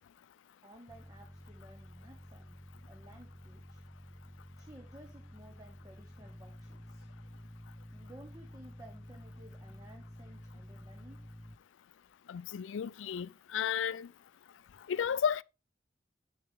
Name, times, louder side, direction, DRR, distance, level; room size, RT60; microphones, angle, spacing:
voice 1, 0.6-2.6 2.9-3.8 4.6-7.1 7.9-11.3, right 1 dB, 20° right, 1.0 m, -56 dB
sound 1, 0.9-11.5, equal, 10° left, 1.0 m, -51 dB
voice 2, 12.3-14.1 14.9-15.4, left 7 dB, 85° left, 0.4 m, -33 dB
9.0 x 7.0 x 3.4 m
head